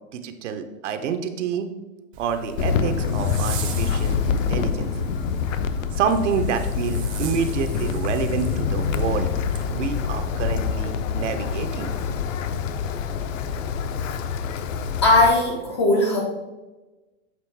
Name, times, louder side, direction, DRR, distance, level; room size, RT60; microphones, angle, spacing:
voice 1, 0.1-1.7 2.2-4.9 5.9-9.3 9.7-11.9, right 6 dB, 60° right, 7 dB, 0.7 m, -28 dB
Zipper (clothing), 2.1-9.7, right 4 dB, 25° right, 0.6 m, -38 dB
Wind, 2.6-15.3, left 6 dB, 70° left, 0.7 m, -26 dB
voice 2, 15.0-16.2, left 2 dB, 25° left, 0 dB, 0.3 m, -18 dB
7.5 x 3.4 x 4.5 m, 1.1 s
supercardioid pair, 160°, 40 cm